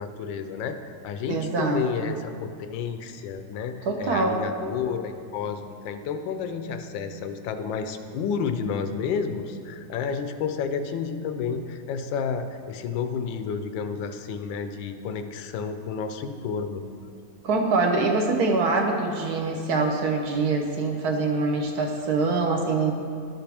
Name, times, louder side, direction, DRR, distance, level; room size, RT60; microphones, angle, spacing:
voice 1, 0.0-16.8, left 6 dB, 85° left, 8 dB, 1.3 m, -31 dB
voice 2, 1.3-2.1 3.9-4.4 17.4-22.9, right 3 dB, 65° right, 2 dB, 1.1 m, -24 dB
12.0 x 5.9 x 3.4 m, 2.4 s
omnidirectional pair, 2.0 m